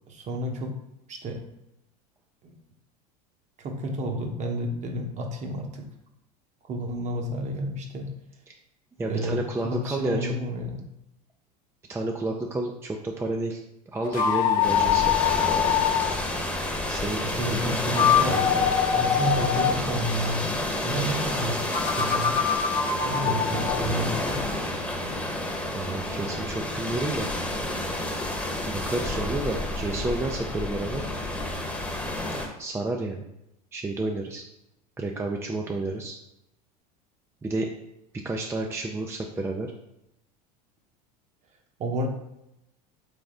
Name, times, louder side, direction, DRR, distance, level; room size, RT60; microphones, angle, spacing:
voice 1, 0.1-0.8 1.1-1.4 2.4-2.6 3.6-5.8 6.6-8.1 9.0-10.9 17.2-22.5 23.0-24.4 41.8-42.1, equal, 35° right, 3 dB, 0.9 m, -31 dB
voice 2, 9.0-10.3 11.9-13.6 13.9-15.2 16.9-17.2 17.5-17.7 25.7-27.3 28.7-31.1 32.6-33.2 33.7-34.4 35.0-36.2 37.4-37.7 38.2-39.7, right 2 dB, 10° right, 1 dB, 0.4 m, -30 dB
sound 1, 14.0-16.1 17.8-19.8 21.7-23.8, left 8 dB, 45° left, 0.9 m, -24 dB
sound 2, 14.6-32.5, left 1 dB, 5° left, 0.9 m, -30 dB
3.9 x 3.5 x 3.7 m, 0.84 s
hypercardioid pair, 90°, 20 cm